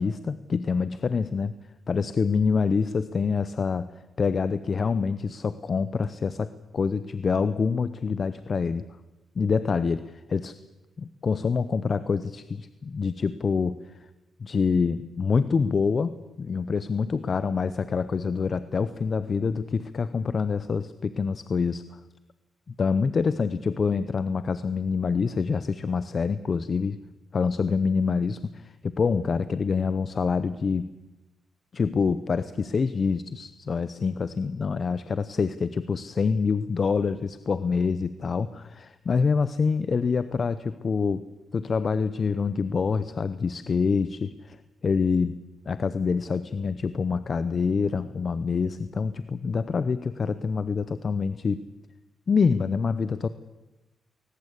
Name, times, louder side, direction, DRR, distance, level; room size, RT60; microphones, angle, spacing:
voice 1, 0.0-1.5 1.9-3.9 4.2-8.8 9.4-10.0 10.3-10.5 11.0-13.8 14.4-21.8 22.8-27.0 27.3-30.9 31.7-41.2 41.5-44.6 44.8-45.4 45.7-51.6 52.3-53.3, left 5 dB, 45° left, 14 dB, 0.8 m, -26 dB
21.5 x 19.5 x 8.3 m, 1.0 s
cardioid pair, 100°, 0 cm